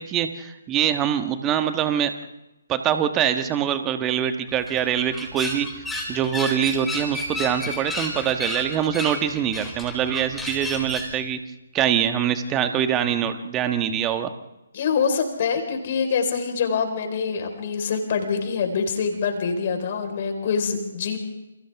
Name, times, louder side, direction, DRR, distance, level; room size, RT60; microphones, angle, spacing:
voice 1, 0.0-2.1 2.7-5.7 6.1-11.4 11.7-14.3, right 9 dB, 15° right, 8 dB, 1.4 m, -24 dB
sound 1, 4.5-11.2, left 1 dB, ahead, 4.5 m, -32 dB
voice 2, 14.7-21.2, left 5 dB, 40° left, 5 dB, 4.5 m, -25 dB
29.0 x 29.0 x 3.6 m, 0.97 s
figure-of-eight pair, 135°, 0 cm